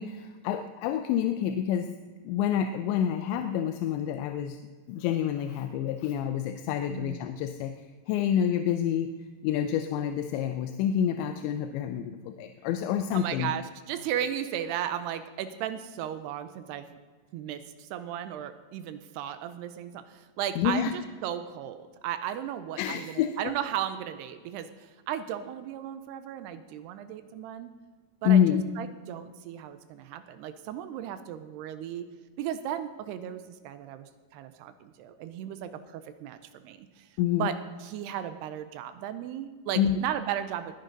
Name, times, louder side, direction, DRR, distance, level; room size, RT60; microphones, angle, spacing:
voice 1, 0.0-1.9 2.2-4.6 4.9-9.1 9.4-13.5 20.6-20.9 22.8-23.5 28.2-28.6 37.2-37.5 39.8-40.0, left 9 dB, 85° left, 8 dB, 2.9 m, -28 dB
voice 2, 13.1-16.9 17.3-27.7 28.2-32.1 32.4-37.1 37.4-37.5 37.8-40.7, right 10 dB, 80° right, 11 dB, 2.5 m, -35 dB
20.0 x 10.5 x 3.9 m, 1.4 s
omnidirectional pair, 5.1 m